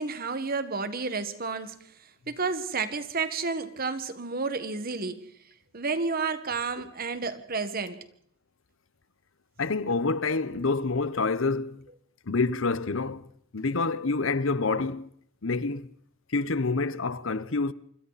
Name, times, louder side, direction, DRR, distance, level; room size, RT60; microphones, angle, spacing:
voice 1, 0.0-1.8 2.3-5.2 5.7-8.0, right 4 dB, 45° right, 1.6 m, -31 dB
voice 2, 9.6-11.9 12.3-13.3 13.5-15.1 15.4-15.9 16.3-17.7, left 3 dB, 65° left, 0.9 m, -27 dB
26.0 x 24.0 x 4.2 m
head